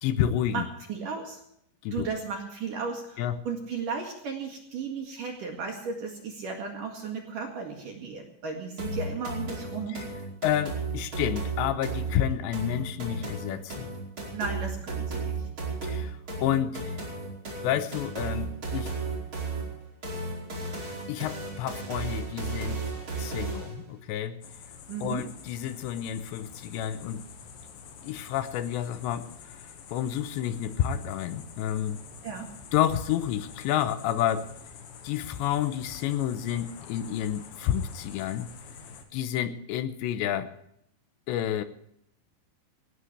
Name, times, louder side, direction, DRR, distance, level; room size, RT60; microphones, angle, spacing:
voice 1, 0.0-0.7 1.8-2.1 3.2-3.4 9.9-10.1 10.4-13.9 15.8-17.0 17.6-18.9 21.1-22.8 23.2-24.4 25.0-27.2 28.0-29.6 29.9-32.0 32.7-34.5 35.0-38.5 39.1-40.5 41.3-41.6, left 10 dB, 80° left, 11 dB, 2.9 m, -30 dB
voice 2, 0.9-1.4 1.9-10.0 14.3-15.5 24.9-25.2 32.2-32.5, right 5 dB, 55° right, 2 dB, 3.0 m, -35 dB
sound 1, 8.8-23.8, right 3 dB, 25° right, 4.9 m, -34 dB
sound 2, 24.4-39.0, left 6 dB, 60° left, 2.9 m, -47 dB
18.5 x 18.0 x 3.3 m, 0.73 s
omnidirectional pair, 5.6 m